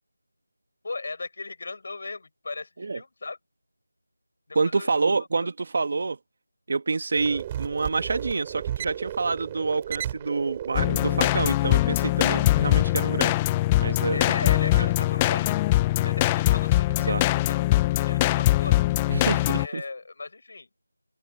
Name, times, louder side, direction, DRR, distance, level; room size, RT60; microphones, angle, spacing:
voice 1, 0.8-3.4 4.5-4.9 5.2-5.5 14.1-17.2 17.5-17.6 17.9-18.8 19.5-20.7, left 3 dB, 40° left, 6.6 m, -37 dB
voice 2, 4.5-6.2 6.7-13.4 13.8-14.2 17.0-17.2 19.1-19.8, right 4 dB, 35° right, 1.6 m, -27 dB
sound 1, 7.2-12.6, right 11 dB, 10° right, 7.8 m, -35 dB
sound 2, 10.7-19.7, left 17 dB, 10° left, 0.3 m, -22 dB
open air
figure-of-eight pair, 175°, 0 cm